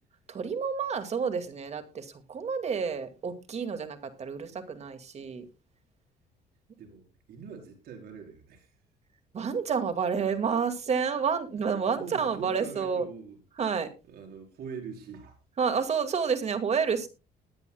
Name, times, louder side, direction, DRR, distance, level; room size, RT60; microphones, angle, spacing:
voice 1, 0.3-5.5 9.3-13.1 13.6-13.9 15.6-17.1, right 6 dB, 40° right, 8 dB, 2.2 m, -29 dB
voice 2, 6.8-8.8 11.9-13.4 14.0-15.4, right 6 dB, 65° right, 3 dB, 4.8 m, -43 dB
20.5 x 9.8 x 2.3 m, 0.29 s
cardioid pair, 110°, 17 cm